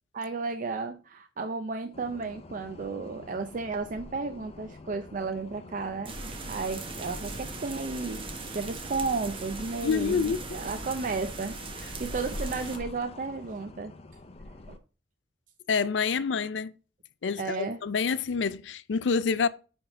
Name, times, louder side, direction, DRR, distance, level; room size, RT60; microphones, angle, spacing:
voice 1, 0.1-8.2 8.5-11.6 12.0-13.9 14.7-14.8 17.4-17.8, right 4 dB, 45° right, 0.5 m, -33 dB
sound 1, 1.9-14.8, left 2 dB, 35° left, 0.6 m, -46 dB
sound 2, 6.0-12.8, right 3 dB, 30° right, 1.0 m, -39 dB
voice 2, 9.8-10.6 15.7-16.7 17.2-19.5, left 5 dB, 90° left, 0.5 m, -27 dB
10.0 x 3.5 x 3.7 m
head